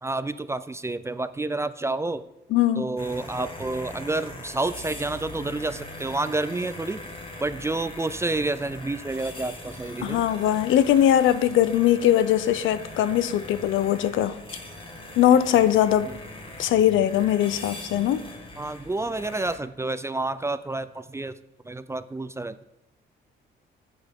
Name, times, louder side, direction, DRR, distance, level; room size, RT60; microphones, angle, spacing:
voice 1, 0.0-2.2 2.8-7.0 7.4-10.2 16.1-16.2 18.6-21.4 21.6-22.6, right 2 dB, 15° right, 13 dB, 0.3 m, -29 dB
voice 2, 2.5-2.8 10.0-14.3 15.2-16.1 16.6-18.3, left 11 dB, 75° left, 14 dB, 0.5 m, -21 dB
sound 1, 3.0-19.6, left 2 dB, 25° left, 1.5 m, -41 dB
7.9 x 7.7 x 3.6 m, 0.87 s
cardioid pair, 90°, 20 cm